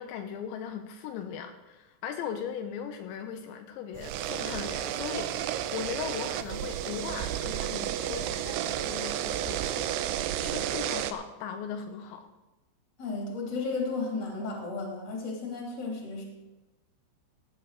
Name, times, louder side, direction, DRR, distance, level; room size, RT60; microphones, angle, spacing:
voice 1, 0.0-12.3, left 8 dB, 80° left, 6 dB, 2.9 m, -39 dB
sound 1, 3.9-11.1, right 11 dB, 85° right, 2.4 m, -32 dB
voice 2, 13.0-16.2, left 3 dB, 25° left, -1 dB, 2.9 m, -33 dB
16.0 x 9.0 x 4.8 m, 1.1 s
omnidirectional pair, 5.3 m